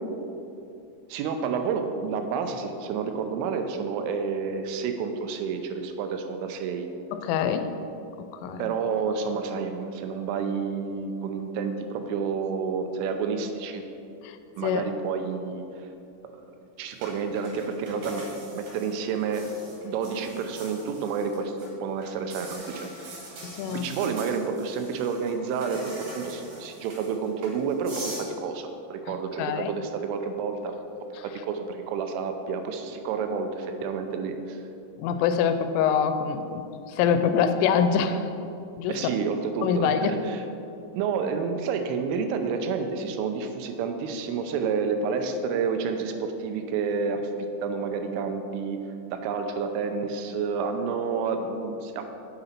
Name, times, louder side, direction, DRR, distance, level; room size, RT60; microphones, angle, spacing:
voice 1, 1.1-6.9 8.6-13.8 14.6-15.9 16.2-16.4 16.8-19.5 19.8-21.5 21.8-23.4 23.7-30.7 31.2-34.6 38.9-40.4 40.9-48.8 49.1-52.1, right 5 dB, 85° right, 6 dB, 3.2 m, -30 dB
voice 2, 7.1-7.7 8.2-8.6 14.2-14.4 14.6-14.8 23.4-23.9 29.1-29.8 35.0-36.6 36.9-38.3 38.8-38.9 39.6-40.1, left 7 dB, 85° left, 8 dB, 3.0 m, -25 dB
sound 1, 17.0-21.7 22.0-28.3, right 1 dB, 50° right, 2.8 m, -43 dB
9.0 x 7.9 x 4.3 m, 2.7 s
omnidirectional pair, 5.7 m